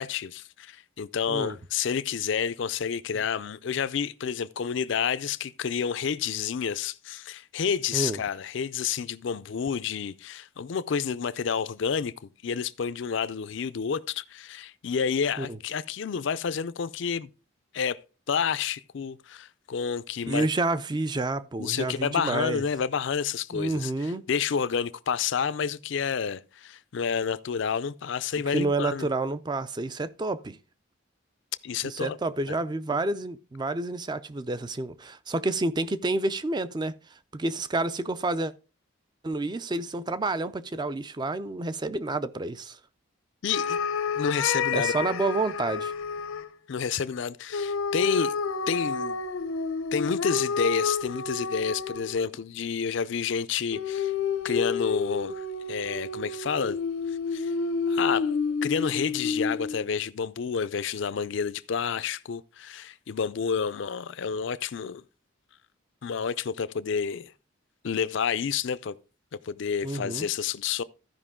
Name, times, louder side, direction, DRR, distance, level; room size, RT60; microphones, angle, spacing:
voice 1, 0.0-12.1 12.4-17.3 17.7-18.0 18.3-20.5 21.6-29.1 31.6-32.2 32.5-32.6 43.4-43.8 44.1-45.1 46.7-48.3 48.7-49.2 49.9-54.1 54.4-56.8 57.1-57.5 57.9-58.3 58.6-65.0 66.0-67.3 67.8-68.9 69.4-70.8, left 6 dB, 60° left, 0.4 m, -29 dB
voice 2, 20.3-22.6 23.5-24.2 28.5-30.6 31.8-36.9 37.3-38.5 39.2-42.8 44.7-45.9 69.8-70.3, right 2 dB, 20° right, 0.4 m, -29 dB
sound 1, 43.5-46.5 47.5-52.3 53.7-59.8, left 5 dB, 85° left, 0.7 m, -30 dB
13.5 x 5.2 x 3.6 m
head